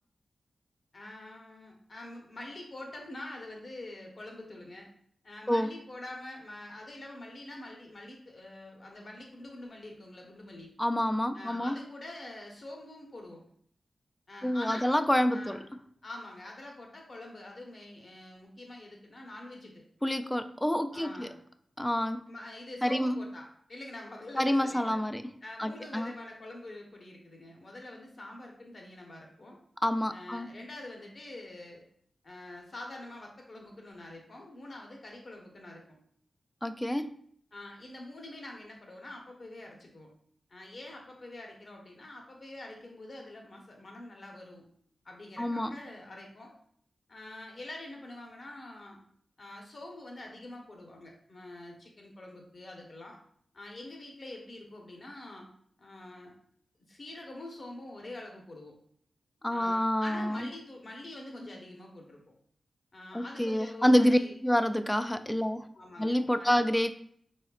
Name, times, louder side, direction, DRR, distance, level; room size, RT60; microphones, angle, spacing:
voice 1, 0.9-4.9 5.2-10.7 11.3-13.4 14.3-14.9 15.3-15.7 16.0-19.8 20.9-21.4 22.3-25.0 25.4-29.6 30.1-31.9 32.2-35.8 37.5-40.1 40.5-44.6 45.0-46.5 47.1-49.0 49.4-53.2 53.5-55.5 55.8-56.3 56.9-58.7 59.5-62.2 62.9-64.3 65.7-66.6, left 1 dB, 50° left, 0 dB, 1.1 m, -45 dB
voice 2, 10.8-11.8 14.4-15.6 20.0-21.3 21.8-22.3 22.8-23.2 24.4-25.2 25.6-26.1 29.8-30.5 36.6-37.1 45.4-45.7 59.4-60.5 63.1-65.7 66.0-66.9, equal, 10° left, 9 dB, 0.3 m, -27 dB
4.2 x 4.0 x 2.4 m, 0.62 s
cardioid pair, 70°, 0 cm